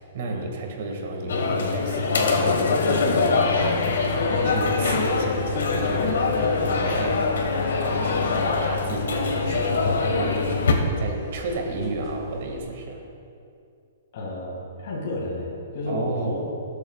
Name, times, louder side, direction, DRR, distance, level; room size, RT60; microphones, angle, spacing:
voice 1, 0.0-3.9 4.4-7.5 7.8-10.7 11.0-13.0 15.9-16.4, right 2 dB, 50° right, 1 dB, 1.9 m, -32 dB
sound 1, 1.3-10.7, left 4 dB, 85° left, 1.5 m, -23 dB
sound 2, 3.6-12.6, right 1 dB, 25° left, 1.5 m, -43 dB
voice 2, 14.1-16.4, left 2 dB, 50° left, -4 dB, 2.1 m, -31 dB
19.0 x 8.0 x 2.4 m, 2.5 s
hypercardioid pair, 165°, 0 cm